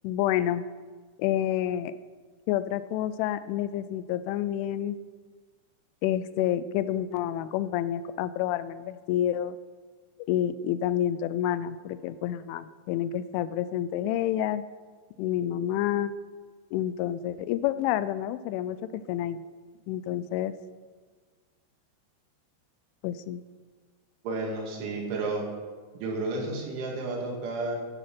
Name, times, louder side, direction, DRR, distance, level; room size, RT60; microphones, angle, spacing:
voice 1, 0.0-0.7 1.2-1.9 2.5-5.0 6.0-9.6 10.3-14.6 15.2-16.1 16.7-19.4 19.9-20.5 23.0-23.4, left 11 dB, 85° left, 14 dB, 3.0 m, -29 dB
voice 2, 24.2-25.4 26.0-27.8, right 2 dB, 75° right, 0 dB, 4.5 m, -31 dB
11.0 x 10.5 x 6.0 m, 1.5 s
omnidirectional pair, 5.5 m